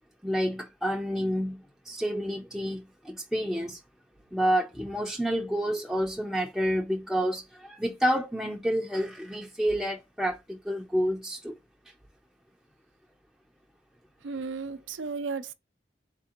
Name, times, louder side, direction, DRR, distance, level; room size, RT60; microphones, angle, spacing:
voice 1, 0.2-1.6 1.9-3.8 4.3-11.5, equal, ahead, 0.4 m, -29 dB
voice 2, 14.2-15.5, right 4 dB, 90° right, 0.5 m, -34 dB
4.2 x 3.6 x 2.8 m
head